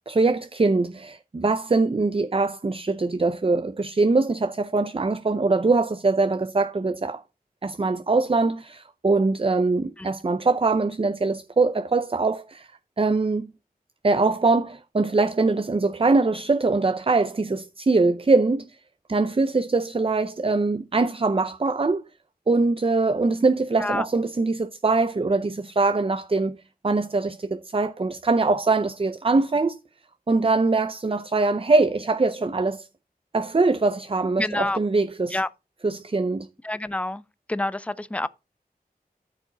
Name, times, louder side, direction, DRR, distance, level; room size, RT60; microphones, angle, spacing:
voice 1, 0.1-7.2 7.6-12.7 13.0-13.5 14.0-18.7 19.1-22.1 22.5-26.6 26.8-29.8 30.3-32.9 33.3-35.4 35.8-36.5, right 3 dB, 35° right, 0.5 m, -22 dB
voice 2, 34.4-34.8 35.3-35.5 36.6-37.2 37.5-38.3, left 2 dB, 10° left, 0.5 m, -27 dB
13.0 x 4.9 x 3.9 m
wide cardioid pair, 70°, 16 cm